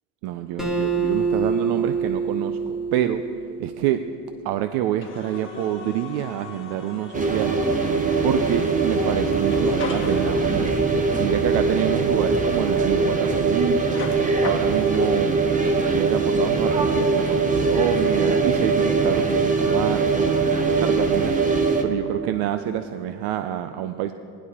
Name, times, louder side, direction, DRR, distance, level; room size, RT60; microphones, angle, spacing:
voice 1, 0.2-3.2 3.6-4.0 4.4-7.6 8.2-10.7 11.2-13.9 14.4-15.4 15.7-20.3 20.8-21.3 21.8-24.1, right 12 dB, 60° right, 10 dB, 0.6 m, -27 dB
Acoustic guitar, 0.6-4.0, right 5 dB, ahead, 1.3 m, -26 dB
sound 1, 5.0-11.1 13.8-15.2, left 4 dB, 25° left, 1.6 m, -38 dB
sound 2, 7.1-21.8, right 4 dB, 20° right, 0.9 m, -21 dB
16.0 x 11.5 x 4.2 m, 2.6 s
cardioid pair, 125°, 43 cm